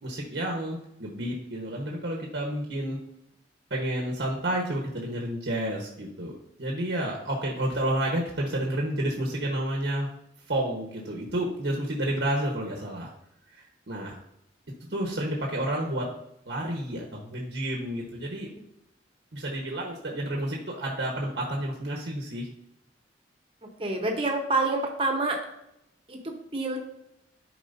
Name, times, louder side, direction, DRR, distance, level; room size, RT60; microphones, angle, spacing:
voice 1, 0.0-3.0 3.7-6.3 6.6-10.1 10.5-13.1 13.5-14.2 14.9-16.1 16.5-18.5 19.3-22.5, right 1 dB, 70° right, -1 dB, 1.2 m, -30 dB
voice 2, 23.6-25.4 26.1-26.8, right 2 dB, 30° right, 2 dB, 1.1 m, -28 dB
11.5 x 4.8 x 2.7 m, 0.81 s
head